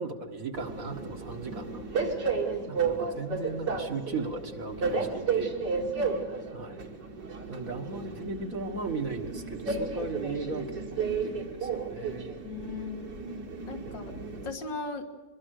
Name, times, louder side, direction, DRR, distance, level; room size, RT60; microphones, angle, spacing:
voice 1, 0.0-2.2 2.7-5.5 6.5-6.8 7.5-12.4, right 3 dB, 45° right, 4 dB, 2.0 m, -37 dB
Train, 0.5-14.5, right 4 dB, 65° right, 2.9 m, -33 dB
voice 2, 12.4-13.3 13.7-15.0, left 4 dB, 70° left, 4 dB, 2.5 m, -39 dB
23.0 x 22.0 x 6.6 m, 1.3 s
omnidirectional pair, 2.1 m